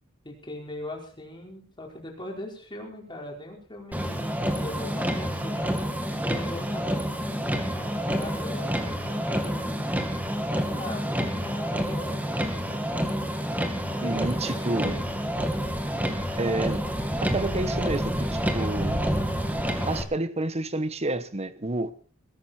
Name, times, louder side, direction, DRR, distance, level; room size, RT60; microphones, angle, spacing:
voice 1, 0.2-5.8 6.2-9.8 10.6-12.3 13.8-14.2 14.4-15.1, left 1 dB, 20° left, 4.9 m, -40 dB
Motor vehicle (road), 3.9-20.0, equal, 10° right, 2.1 m, -28 dB
voice 2, 14.0-14.9 16.4-16.8 17.2-19.0 19.8-21.9, right 2 dB, 30° right, 1.2 m, -29 dB
21.0 x 13.0 x 4.4 m
head